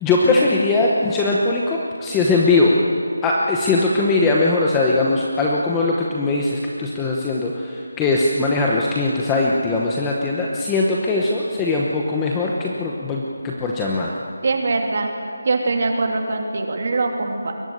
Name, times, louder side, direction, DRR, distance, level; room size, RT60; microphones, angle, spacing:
voice 1, 0.0-2.8 3.2-14.1, left 3 dB, 5° left, -3 dB, 0.9 m, -20 dB
voice 2, 14.4-15.1 15.4-17.5, right 3 dB, 35° right, 3 dB, 2.7 m, -22 dB
22.0 x 19.0 x 9.5 m, 2.4 s
figure-of-eight pair, 180°, 0 cm